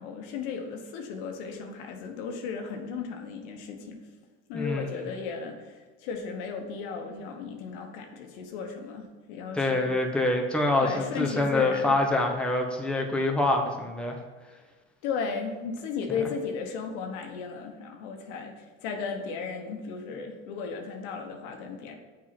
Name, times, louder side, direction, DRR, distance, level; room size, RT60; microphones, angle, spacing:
voice 1, 0.0-4.0 4.5-10.0 10.8-11.9 15.0-18.5 18.8-21.9, left 5 dB, 85° left, 3 dB, 1.3 m, -35 dB
voice 2, 4.5-5.1 9.5-14.2, left 2 dB, 5° left, 1 dB, 1.0 m, -26 dB
6.7 x 4.7 x 5.9 m, 1.3 s
cardioid pair, 120°, 33 cm